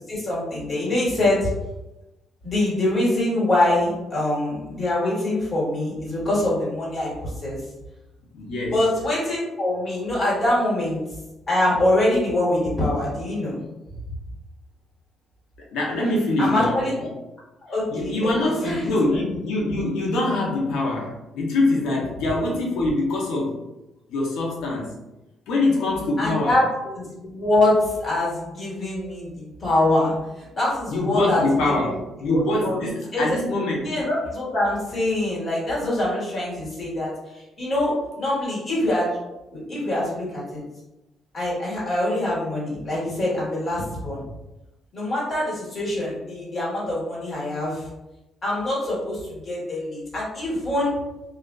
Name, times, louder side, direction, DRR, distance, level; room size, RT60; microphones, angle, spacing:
voice 1, 0.1-1.5 2.4-7.6 8.7-11.0 11.5-13.6 16.4-16.9 17.7-18.3 18.6-18.9 26.2-31.9 32.3-33.4 33.8-39.1 39.5-40.6 41.3-44.2 44.9-47.9 48.4-51.0, left 1 dB, 40° left, -6 dB, 1.3 m, -24 dB
voice 2, 8.3-8.8 15.7-17.1 17.9-23.6 24.1-24.9 25.5-26.6 30.9-33.9, left 2 dB, 85° left, -3 dB, 0.7 m, -24 dB
2.3 x 2.3 x 2.2 m, 0.98 s
cardioid pair, 90°, 0 cm